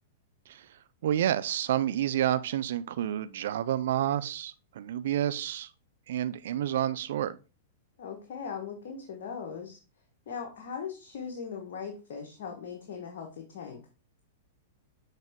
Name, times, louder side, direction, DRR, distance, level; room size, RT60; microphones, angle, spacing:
voice 1, 1.0-5.7 6.1-7.4, right 11 dB, 65° right, 0.3 m, -29 dB
voice 2, 8.0-9.8 10.3-13.8, left 6 dB, 60° left, 1.3 m, -39 dB
7.2 x 3.6 x 3.6 m
hypercardioid pair, 105°, 0 cm